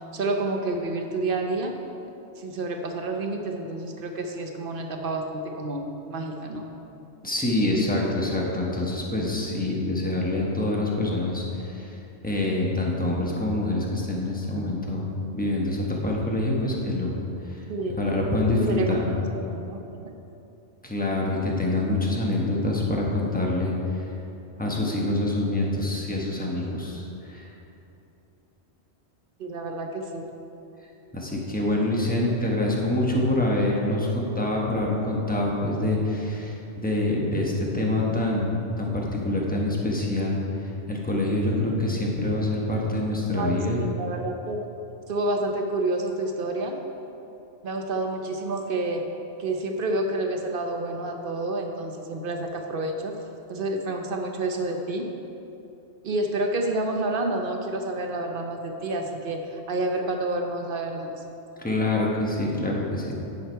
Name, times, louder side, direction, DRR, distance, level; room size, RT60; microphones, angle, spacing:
voice 1, 0.1-1.8 2.4-6.6 17.7-18.0 18.5-19.0 19.3-20.1 29.4-30.3 43.3-44.7 45.1-46.8 47.6-49.1 49.4-53.1 53.5-55.1 56.0-61.1, right 2 dB, 55° right, 4 dB, 0.8 m, -29 dB
voice 2, 7.2-12.0 12.2-15.1 15.3-17.2 17.5-17.6 17.9-19.1 20.8-24.1 24.6-27.5 31.1-43.8 61.6-63.1, left 1 dB, 10° left, -2 dB, 1.0 m, -26 dB
9.6 x 6.2 x 4.5 m, 2.9 s
omnidirectional pair, 1.2 m